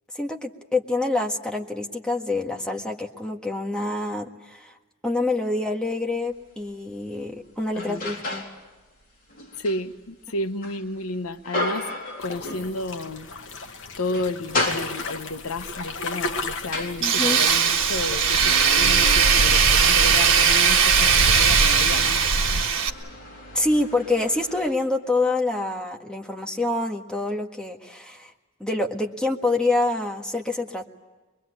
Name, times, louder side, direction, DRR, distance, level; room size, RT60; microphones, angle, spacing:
voice 1, 0.1-4.7 5.0-8.5 17.0-17.4 23.5-28.3 28.6-30.9, left 2 dB, 5° left, 1.7 m, -26 dB
sound 1, 6.3-6.5 7.0-8.6 9.0-13.1 13.4-13.6 14.0-15.4 16.1-24.7, left 2 dB, 45° left, 4.1 m, -34 dB
voice 2, 9.6-11.9 12.2-13.3 14.0-22.3, left 2 dB, 90° left, 1.0 m, -32 dB
sound 2, 12.2-22.6, equal, 65° left, 1.4 m, -30 dB
Tools, 17.0-22.9, right 7 dB, 60° right, 1.8 m, -19 dB
24.0 x 23.0 x 8.4 m
head